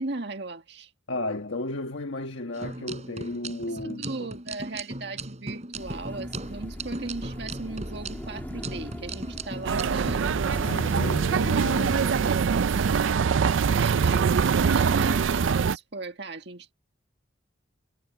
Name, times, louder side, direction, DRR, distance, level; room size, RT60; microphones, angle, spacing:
voice 1, 0.0-0.9 3.7-10.3 13.7-16.7, right 3 dB, 60° right, 1.9 m, -37 dB
voice 2, 1.1-4.3 10.6-12.4, left 2 dB, 85° left, 1.4 m, -34 dB
sound 1, 2.5-10.1, right 2 dB, 35° right, 6.4 m, -38 dB
sound 2, 5.7-12.1, equal, 10° left, 1.5 m, -40 dB
sound 3, 9.6-15.8, right 6 dB, 85° right, 0.4 m, -23 dB
head